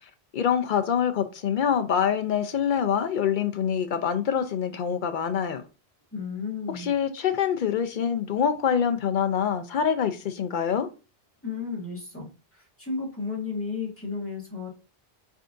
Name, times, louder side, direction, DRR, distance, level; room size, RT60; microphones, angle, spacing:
voice 1, 0.3-5.6 6.7-10.9, left 8 dB, 60° left, 0.6 m, -25 dB
voice 2, 6.1-6.9 11.4-14.7, left 4 dB, 10° left, 1.6 m, -33 dB
4.5 x 3.6 x 2.6 m
omnidirectional pair, 1.1 m